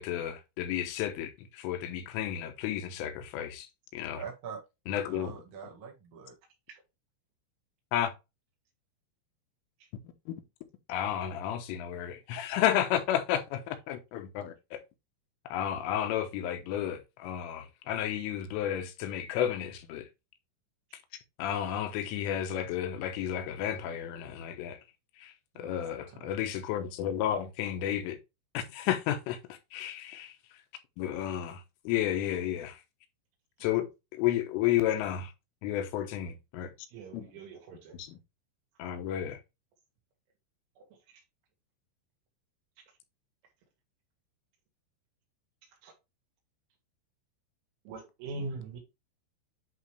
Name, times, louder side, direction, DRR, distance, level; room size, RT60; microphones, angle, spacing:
voice 1, 0.0-4.2 4.9-5.3 7.9-8.1 10.3-10.4 10.9-14.8 15.5-20.1 21.4-24.8 25.2-28.2 28.6-30.4 31.0-32.8 33.6-35.3 35.6-36.7 37.1-37.3 37.9-38.2 38.8-39.4, left 11 dB, 85° left, 3.6 m, -32 dB
voice 2, 4.1-4.6 4.9-6.3 25.5-26.3, right 6 dB, 50° right, 1.6 m, -44 dB
voice 3, 36.9-38.0 40.8-40.9 45.8-45.9 47.9-48.8, right 3 dB, 75° right, 4.9 m, -41 dB
10.5 x 3.8 x 3.3 m
omnidirectional pair, 5.7 m